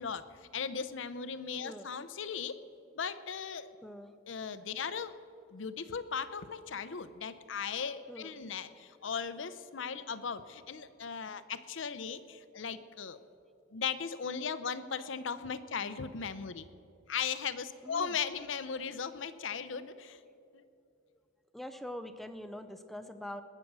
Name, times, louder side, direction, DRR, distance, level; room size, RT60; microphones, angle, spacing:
voice 1, 0.0-2.6 2.9-3.7 4.3-5.1 5.5-13.2 13.7-16.7 17.1-20.2 20.5-20.6, left 6 dB, 75° left, 13 dB, 0.7 m, -37 dB
voice 2, 3.8-4.2 8.1-8.4 14.6-14.7 17.8-18.2 21.5-23.4, left 1 dB, ahead, 10 dB, 0.5 m, -44 dB
20.0 x 7.7 x 6.1 m, 2.6 s
head